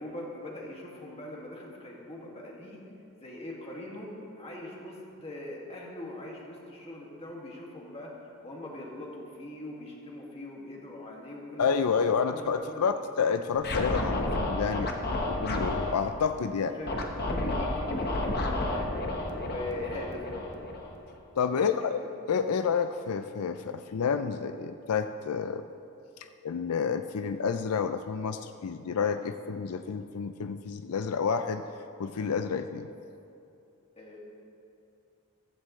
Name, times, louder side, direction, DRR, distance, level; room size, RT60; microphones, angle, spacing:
voice 1, 0.0-2.8 3.1-4.1 4.3-8.1 8.4-13.0 14.7-15.0 16.6-17.0 17.3-18.9 19.4-20.6 21.5-22.1 34.0-34.2, left 1 dB, 30° left, -3 dB, 2.1 m, -42 dB
voice 2, 11.6-14.9 15.3-16.7 21.4-22.0 22.3-25.7 26.4-31.6 32.0-32.9, left 6 dB, 85° left, 8 dB, 0.5 m, -29 dB
Scratching (performance technique), 13.6-15.9 16.9-21.2, left 1 dB, 50° left, 1.2 m, -31 dB
15.0 x 14.5 x 3.2 m, 2.7 s
head